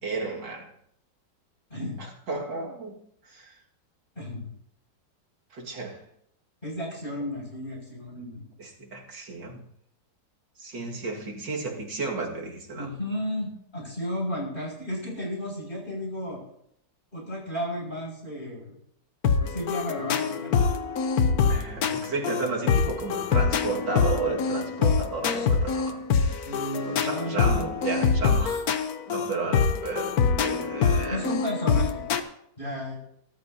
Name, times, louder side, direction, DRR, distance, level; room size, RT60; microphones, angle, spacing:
voice 1, 0.0-0.7 2.0-3.0 3.3-3.6 5.5-6.0 8.6-9.6 10.6-12.9 21.5-26.5 26.8-28.6 29.1-31.2, right 4 dB, 85° right, 2.8 m, -33 dB
voice 2, 1.7-2.0 4.2-4.5 6.6-8.5 12.8-16.4 17.1-18.8 19.4-20.6 26.4-27.7 31.1-32.2 32.6-33.0, equal, 30° left, 7.1 m, -33 dB
sound 1, 19.2-32.2, left 5 dB, 60° left, 1.4 m, -25 dB
23.0 x 13.5 x 2.9 m
omnidirectional pair, 1.9 m